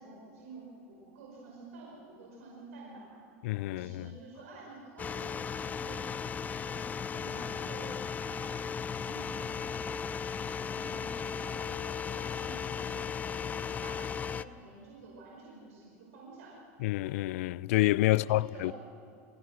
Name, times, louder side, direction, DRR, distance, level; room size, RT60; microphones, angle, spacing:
voice 1, 0.0-3.2 3.7-16.6 18.1-18.8, right 3 dB, 85° right, 5.4 m, -50 dB
voice 2, 3.4-4.1 16.8-18.8, left 18 dB, 70° left, 0.4 m, -28 dB
sound 1, 5.0-14.4, left 6 dB, 20° left, 0.6 m, -36 dB
29.0 x 17.5 x 6.4 m
supercardioid pair, 120°, 8 cm